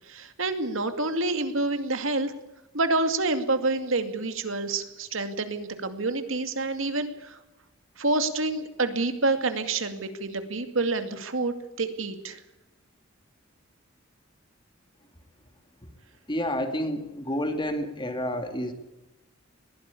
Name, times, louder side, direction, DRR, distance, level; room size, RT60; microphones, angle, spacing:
voice 1, 0.1-2.3 2.7-7.4 8.0-12.4, right 2 dB, 75° right, 8 dB, 2.4 m, -28 dB
voice 2, 16.3-18.7, equal, 25° left, 7 dB, 2.4 m, -29 dB
21.5 x 15.5 x 8.5 m, 0.99 s
head